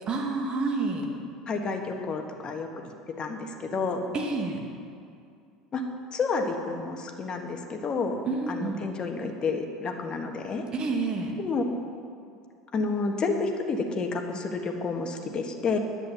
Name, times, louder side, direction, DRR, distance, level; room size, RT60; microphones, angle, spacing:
voice 1, 0.1-1.1 4.1-4.6 8.3-8.8 10.7-11.4, right 3 dB, 35° right, 1 dB, 2.1 m, -29 dB
voice 2, 1.5-2.7 3.2-4.0 5.7-5.8 6.1-8.2 8.5-10.6 11.4-11.6 12.7-15.8, left 4 dB, 35° left, 4 dB, 1.5 m, -30 dB
11.0 x 9.1 x 7.0 m, 2.4 s
figure-of-eight pair, 70°, 3 cm